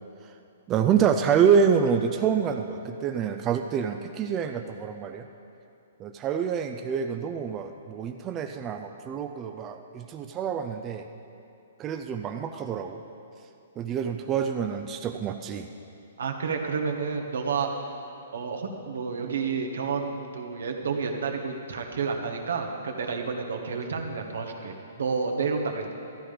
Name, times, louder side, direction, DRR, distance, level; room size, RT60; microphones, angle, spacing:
voice 1, 0.7-5.2 6.0-11.1 11.8-13.0 13.8-15.7, right 7 dB, 20° right, 5 dB, 0.4 m, -26 dB
voice 2, 16.2-17.9 18.3-25.9, right 5 dB, 80° right, 2 dB, 1.5 m, -30 dB
12.5 x 11.0 x 5.1 m, 2.7 s
hypercardioid pair, 150°, 0 cm